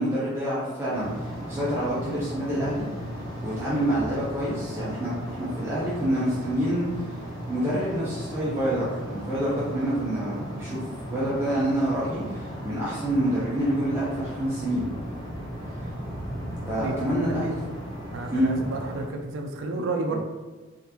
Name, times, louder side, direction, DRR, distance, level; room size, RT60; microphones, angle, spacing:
voice 1, 0.0-2.9 3.4-6.8 7.5-10.8 11.1-14.9 15.8-15.9 16.7-17.6 18.3-18.5 20.1-20.2, right 1 dB, 10° right, -9 dB, 0.7 m, -27 dB
sound 1, 0.9-19.1, equal, 20° left, 1.0 m, -36 dB
voice 2, 18.1-20.2, right 3 dB, 60° right, 2 dB, 0.4 m, -31 dB
3.8 x 3.4 x 2.9 m, 1.2 s
head